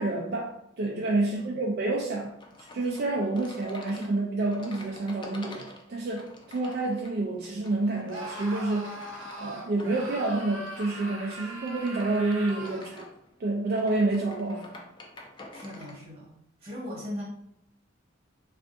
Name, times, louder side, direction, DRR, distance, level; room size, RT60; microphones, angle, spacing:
voice 1, 0.0-2.3 2.7-9.0 9.4-13.1 13.4-14.7, right 2 dB, 55° right, -2 dB, 0.4 m, -28 dB
voice 2, 1.2-1.6 15.5-16.3 16.6-17.2, left 1 dB, 30° right, -3 dB, 1.1 m, -38 dB
sound 1, 2.4-16.0, left 2 dB, 25° left, 0.4 m, -49 dB
Screaming, 8.1-12.9, right 1 dB, 85° right, 0.8 m, -40 dB
3.4 x 2.5 x 2.5 m, 0.75 s
head